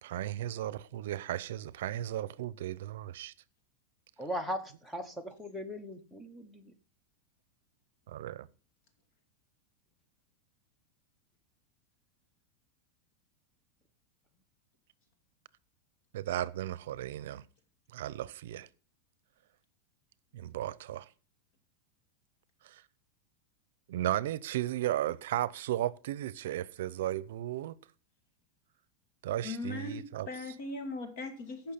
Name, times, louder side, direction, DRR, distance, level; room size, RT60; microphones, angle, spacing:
voice 1, 0.0-3.3 8.1-8.5 16.1-17.4 17.9-18.7 20.3-21.1 22.6-22.8 23.9-27.8 29.2-30.3, right 13 dB, 75° right, 0.6 m, -35 dB
voice 2, 4.2-6.7, equal, ahead, 1.0 m, -39 dB
voice 3, 29.4-31.7, left 2 dB, 50° left, 2.4 m, -39 dB
15.5 x 5.8 x 5.8 m
supercardioid pair, 165°, 0 cm